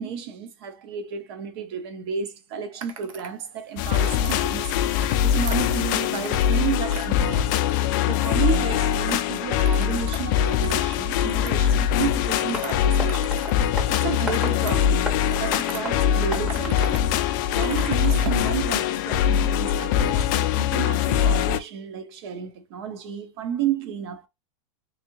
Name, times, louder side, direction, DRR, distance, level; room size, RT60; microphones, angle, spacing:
voice 1, 0.0-4.7 5.2-7.5 8.0-13.4 13.9-15.1 15.4-17.0 17.5-24.3, right 8 dB, 50° right, 0.8 m, -32 dB
sound 1, 2.8-3.4 3.7-4.4 4.9-6.6 6.9-8.1 8.5-9.1 9.5-13.6 13.9-15.8 16.3-17.0 17.3-18.5, right 6 dB, 80° right, 0.9 m, -41 dB
sound 2, 3.8-21.6, left 9 dB, 35° left, 0.4 m, -22 dB
Tap, 12.5-18.0, left 2 dB, 5° right, 0.7 m, -36 dB
3.6 x 3.2 x 2.9 m
supercardioid pair, 170°, 17 cm